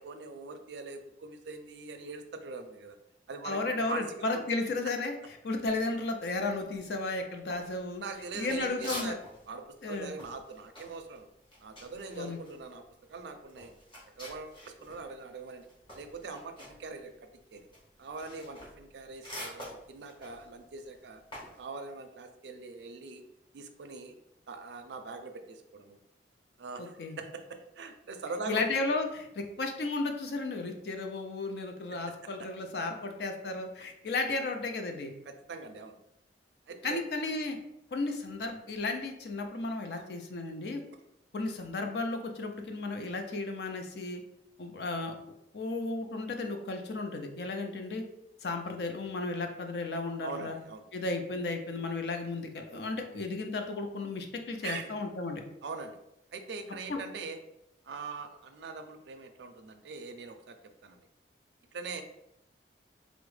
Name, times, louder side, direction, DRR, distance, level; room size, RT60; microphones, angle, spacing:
voice 1, 0.0-3.0 3.3-4.4 8.0-9.2 9.5-11.3 11.6-12.8 13.1-13.7 14.2-15.7 15.9-17.7 18.0-21.2 21.6-23.2 23.5-24.1 24.5-26.0 26.6-28.6 31.9-32.0 35.3-36.0 36.7-37.0 39.9-40.0 50.2-50.8 54.6-54.9 55.6-56.0 56.3-57.4 57.8-60.6 60.8-61.0 61.7-62.0, right 4 dB, 75° right, 7 dB, 0.4 m, -42 dB
voice 2, 3.4-5.2 5.4-8.0 8.3-9.1 9.8-10.1 12.2-12.4 26.8-27.2 28.5-35.1 36.8-37.6 37.9-40.8 41.3-44.2 44.6-45.1 45.5-48.0 48.4-50.6 50.9-55.4 56.9-57.0, left 3 dB, 65° left, 5 dB, 0.4 m, -34 dB
sound 1, 7.5-9.5 9.8-15.0 15.4-21.6, left 1 dB, 25° left, 1.0 m, -46 dB
3.4 x 2.0 x 3.2 m, 0.82 s
head